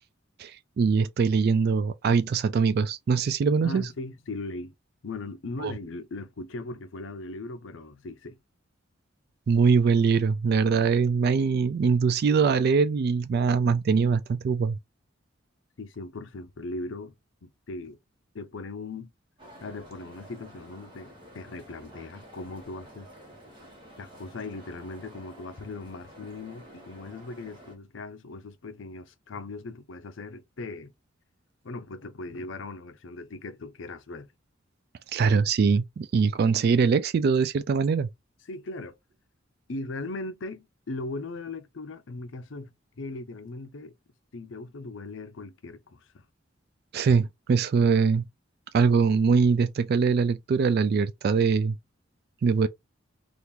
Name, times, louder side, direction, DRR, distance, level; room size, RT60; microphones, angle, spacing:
voice 1, 0.4-3.9 5.6-5.7 9.5-14.8 35.1-38.1 46.9-48.3 48.7-51.8 52.4-52.7, right 5 dB, 50° right, 0.3 m, -22 dB
voice 2, 3.6-4.7 5.0-8.4 15.8-17.2 17.4-18.0 18.3-19.1 19.6-23.1 24.0-30.9 31.6-34.3 38.5-38.9 39.7-42.7 43.0-44.0 44.3-46.2, left 2 dB, 70° left, 0.6 m, -39 dB
sound 1, 19.4-27.8, equal, 25° right, 1.1 m, -50 dB
2.9 x 2.5 x 3.5 m
head